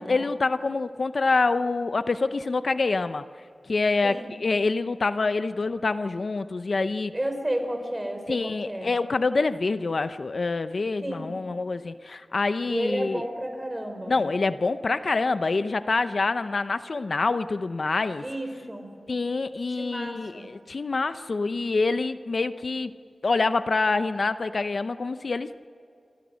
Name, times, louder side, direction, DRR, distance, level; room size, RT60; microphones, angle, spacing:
voice 1, 0.0-3.2 3.7-7.1 8.3-13.2 14.1-18.2 19.1-22.9 23.2-25.5, left 3 dB, 60° left, 11 dB, 0.7 m, -26 dB
voice 2, 7.1-8.9 11.0-11.3 12.7-14.2 18.2-18.9 19.8-20.5, right 1 dB, 20° right, 5 dB, 4.6 m, -32 dB
28.5 x 24.5 x 6.4 m, 2.5 s
wide cardioid pair, 90°, 0 cm